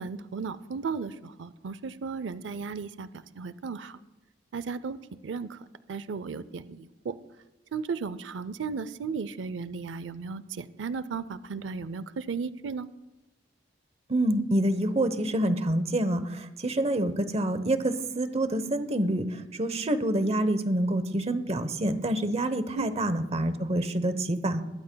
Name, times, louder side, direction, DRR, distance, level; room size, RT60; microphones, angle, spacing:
voice 1, 0.0-3.1 3.4-4.0 4.5-5.0 5.2-5.6 5.9-7.2 7.7-12.9 22.7-23.0, right 5 dB, 80° right, 15 dB, 0.5 m, -35 dB
voice 2, 14.1-16.2 16.6-19.2 19.6-24.6, right 1 dB, 35° right, 11 dB, 0.9 m, -27 dB
20.5 x 14.5 x 2.3 m, 1.1 s
head